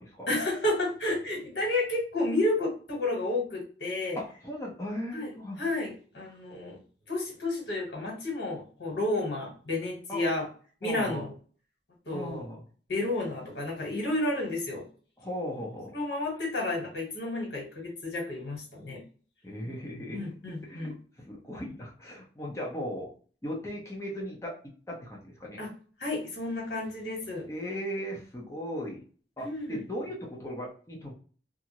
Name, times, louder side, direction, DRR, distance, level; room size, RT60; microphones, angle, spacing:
voice 1, 0.3-4.2 5.1-5.3 5.6-6.8 7.1-10.5 10.8-11.3 12.1-12.4 12.9-14.8 15.9-19.0 20.1-20.9 25.6-25.7 26.0-27.5 29.4-29.8, left 2 dB, 80° left, 0 dB, 1.3 m, -31 dB
voice 2, 4.1-5.6 10.1-10.3 10.8-11.3 12.1-12.6 15.2-16.0 19.4-20.3 20.6-20.9 21.2-23.1 23.4-25.6 27.5-29.0 29.4-31.1, equal, 15° left, -3 dB, 0.7 m, -37 dB
2.6 x 2.4 x 2.9 m, 0.41 s
head